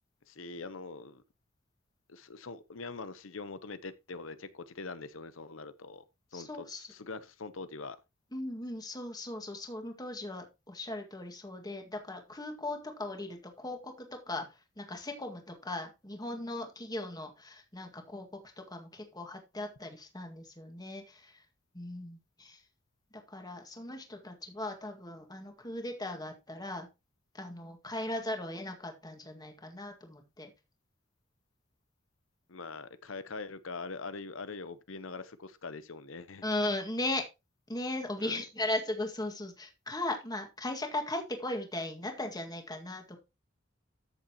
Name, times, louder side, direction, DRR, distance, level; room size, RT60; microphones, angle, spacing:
voice 1, 0.3-1.2 2.1-6.0 6.3-8.0 32.5-36.4 38.2-38.4, left 3 dB, 70° left, 0.9 m, -43 dB
voice 2, 6.3-6.9 8.3-14.5 14.8-21.4 21.7-22.6 23.1-26.9 27.3-30.5 36.4-37.2 37.7-43.2, left 1 dB, 20° left, 1.9 m, -38 dB
14.0 x 6.8 x 2.9 m
head